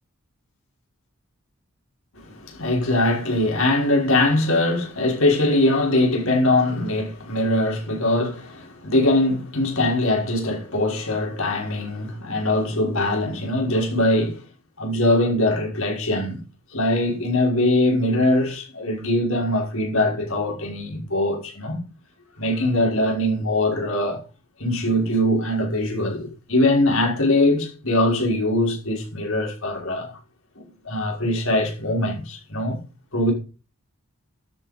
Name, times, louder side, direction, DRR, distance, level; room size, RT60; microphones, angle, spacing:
voice 1, 2.1-14.4 14.8-16.4 16.7-21.8 22.4-24.2 24.6-30.1 30.6-32.8 33.1-33.3, left 1 dB, 70° left, 5.8 m, -22 dB
12.5 x 9.2 x 5.4 m
head